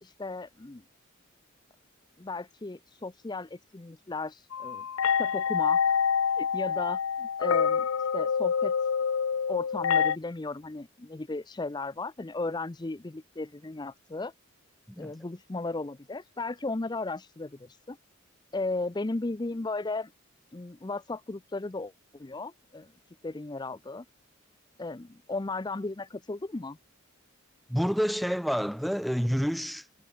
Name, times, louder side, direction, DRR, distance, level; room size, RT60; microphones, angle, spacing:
voice 1, 0.0-0.8 2.2-4.9 5.2-6.0 6.3-8.7 9.5-14.3 15.0-18.0 18.5-20.1 20.5-24.1 24.8-26.8, left 3 dB, 20° left, 0.5 m, -35 dB
sound 1, 4.5-10.2, left 7 dB, 70° left, 0.5 m, -26 dB
voice 2, 27.7-29.9, equal, ahead, 1.2 m, -28 dB
head